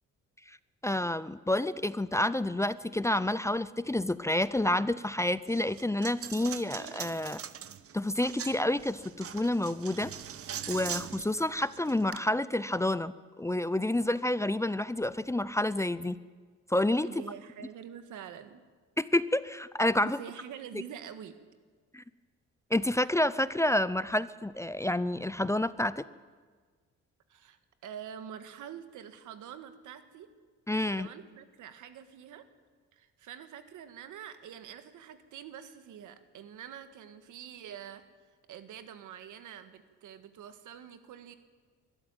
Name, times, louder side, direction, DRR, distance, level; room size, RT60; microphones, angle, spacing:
voice 1, 0.8-7.4 7.9-10.1 10.7-13.1 13.4-16.2 16.7-17.1 19.0-20.2 21.9-22.0 22.7-26.0 30.7-31.1, left 1 dB, 10° left, 16 dB, 0.6 m, -29 dB
Coin (dropping), 5.5-12.2, right 9 dB, 50° right, 1.0 m, -42 dB
voice 2, 17.0-18.6 20.0-21.4 27.3-30.3 30.9-32.5 32.9-38.0 38.5-41.3, right 9 dB, 80° right, 9 dB, 1.7 m, -46 dB
23.0 x 13.0 x 9.1 m, 1.5 s
cardioid pair, 90°, 30 cm